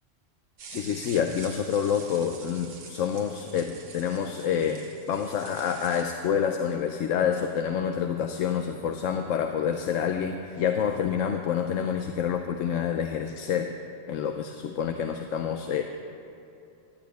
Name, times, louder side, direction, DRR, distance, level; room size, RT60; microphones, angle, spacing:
sound 1, 0.6-6.0, right 5 dB, 80° right, 1.4 m, -46 dB
voice 1, 0.7-13.7 14.1-15.8, left 8 dB, 80° left, 5 dB, 1.0 m, -28 dB
12.5 x 8.5 x 9.2 m, 2.8 s
omnidirectional pair, 1.3 m